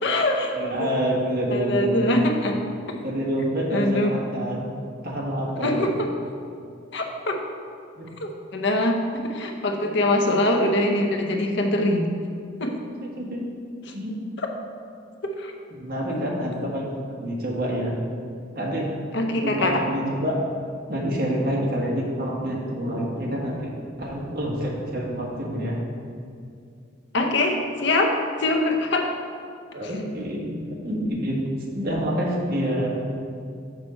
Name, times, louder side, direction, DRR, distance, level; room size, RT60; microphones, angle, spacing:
voice 1, 0.0-1.0 1.5-2.6 3.7-4.2 5.6-6.1 6.9-7.4 8.2-12.1 12.6-12.8 13.9-14.0 14.4-14.5 15.2-15.5 16.1-16.2 19.1-19.8 27.1-29.2 29.8-29.9, left 1 dB, 60° left, 3 dB, 0.8 m, -23 dB
voice 2, 0.5-2.2 3.0-4.7 5.0-5.9 8.0-8.1 13.2-13.4 13.9-14.2 15.7-16.9 17.2-18.0 18.5-18.9 19.4-20.4 20.9-23.7 24.0-25.8 29.7-31.4 31.7-33.1, equal, 50° right, -2 dB, 1.4 m, -27 dB
6.5 x 6.1 x 4.3 m, 2.4 s
head